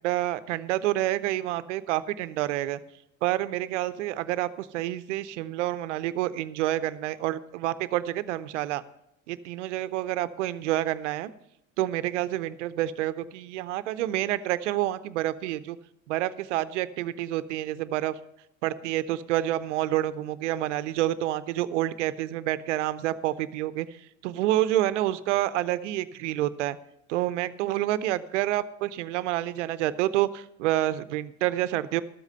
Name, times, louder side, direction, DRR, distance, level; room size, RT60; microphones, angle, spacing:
voice 1, 0.0-2.8 3.2-8.8 9.3-11.3 11.8-15.8 16.1-18.2 18.6-26.8 27.1-32.0, right 14 dB, 85° right, 15 dB, 0.7 m, -28 dB
12.5 x 8.2 x 5.4 m, 0.83 s
hypercardioid pair, 70°, 35 cm